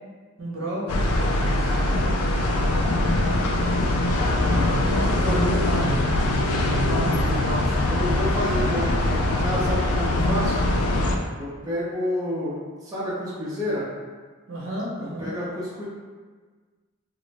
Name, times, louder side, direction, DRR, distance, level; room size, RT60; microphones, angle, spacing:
voice 1, 0.4-3.5 10.8-11.1 14.5-15.3, right 1 dB, 65° right, -5 dB, 0.7 m, -34 dB
sound 1, 0.9-11.2, left 1 dB, 90° left, 0.4 m, -22 dB
voice 2, 4.3-6.1 6.7-10.5 11.4-13.8 15.0-15.9, equal, 15° right, -9 dB, 0.5 m, -30 dB
2.4 x 2.1 x 3.1 m, 1.5 s
head